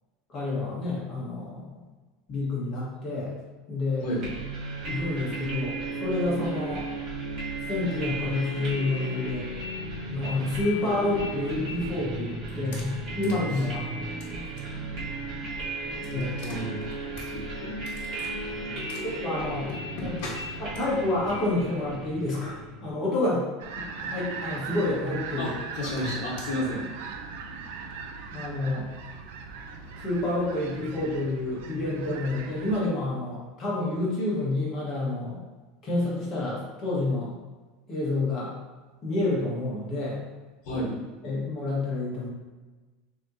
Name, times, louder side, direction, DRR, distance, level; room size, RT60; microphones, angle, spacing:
voice 1, 0.3-1.8 2.3-3.3 3.7-4.1 4.9-6.9 7.6-9.5 10.1-14.0 16.1-16.3 19.0-19.7 20.0-20.1 20.6-23.5 23.8-25.5 28.3-28.9 30.0-35.4 35.8-37.3 37.9-38.5 39.0-40.2 41.2-42.3, left 2 dB, 25° left, -6 dB, 1.4 m, -29 dB
sound 1, 4.2-22.9, right 2 dB, 35° right, 1.3 m, -35 dB
voice 2, 16.0-19.0 20.2-20.3 25.4-26.8 40.6-41.0, left 1 dB, 50° left, -6 dB, 1.3 m, -33 dB
sound 2, 23.6-32.9, right 5 dB, 70° right, 0.5 m, -39 dB
6.4 x 3.0 x 2.7 m, 1.3 s
supercardioid pair, 175°, 0 cm